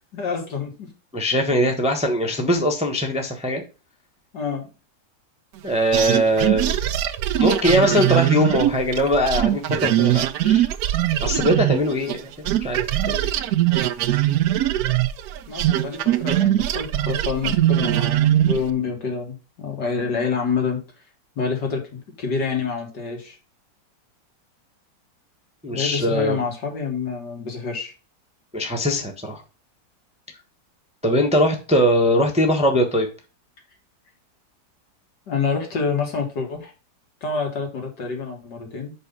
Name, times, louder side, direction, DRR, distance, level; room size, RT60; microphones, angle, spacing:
voice 1, 0.1-0.9 1.5-1.7 4.3-4.7 15.5-20.8 21.4-23.4 25.7-27.9 35.3-36.7 37.2-38.9, left 5 dB, 70° left, 1 dB, 2.6 m, -27 dB
voice 2, 1.1-3.6 5.6-6.8 7.4-10.7 11.2-12.3 12.6-12.8 13.1-13.3 25.6-26.4 28.5-29.4 31.0-33.1, equal, 5° right, 2 dB, 1.0 m, -21 dB
sound 1, 5.9-12.2 12.5-18.7, right 13 dB, 70° right, 1.0 m, -21 dB
5.6 x 5.5 x 5.4 m, 0.32 s
omnidirectional pair, 1.9 m